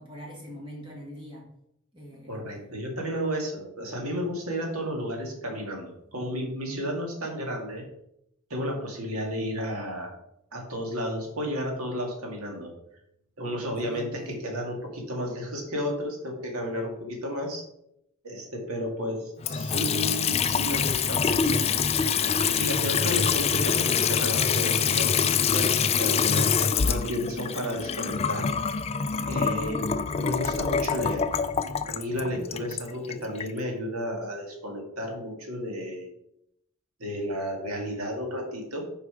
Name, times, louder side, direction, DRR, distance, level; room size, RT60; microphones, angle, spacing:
voice 1, 0.0-1.4 1.9-2.4 13.6-14.3 32.1-32.5, equal, 25° right, -4 dB, 1.7 m, -43 dB
voice 2, 2.3-7.9 8.5-10.2 10.5-12.7 13.4-17.6 18.2-21.7 22.4-25.7 26.0-28.5 29.3-29.9 30.1-31.3 31.9-36.1 37.0-38.9, equal, 85° right, 1 dB, 2.0 m, -32 dB
Water tap faucet / Sink (filling or washing) / Trickle dribble, 19.4-33.5, left 6 dB, 30° left, 0.3 m, -25 dB
6.4 x 4.9 x 4.9 m, 0.78 s
head